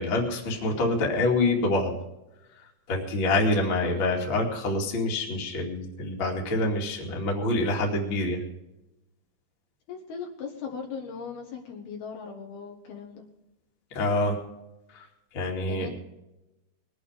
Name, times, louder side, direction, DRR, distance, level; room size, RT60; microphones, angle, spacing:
voice 1, 0.0-1.9 2.9-8.4 13.9-14.4 14.9-15.0 15.3-15.9, left 2 dB, 35° left, 0 dB, 2.7 m, -26 dB
voice 2, 3.7-4.4 9.9-13.2 15.6-15.9, left 6 dB, 65° left, 1 dB, 3.2 m, -39 dB
21.5 x 9.0 x 5.1 m, 0.94 s
omnidirectional pair, 5.1 m